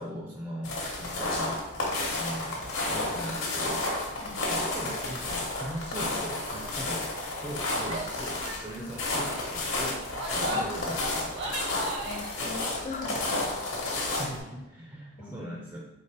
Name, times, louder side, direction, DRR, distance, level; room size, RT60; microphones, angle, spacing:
voice 1, 0.0-1.6 2.1-3.8 4.5-7.1 7.4-11.6 14.1-15.9, equal, 15° right, -2 dB, 0.4 m, -40 dB
sound 1, 0.6-14.4, left 2 dB, 70° left, 1.0 m, -31 dB
voice 2, 4.2-4.5 8.8-9.1 10.5-10.6 12.0-13.4 14.2-14.4 15.2-15.6, left 2 dB, 35° left, 2 dB, 0.5 m, -41 dB
Female speech woman speaking / Yell, 7.8-8.1 8.4-8.6 8.9-9.2 9.9-12.3, right 1 dB, 55° right, 0.7 m, -37 dB
4.2 x 3.0 x 3.3 m, 0.99 s
head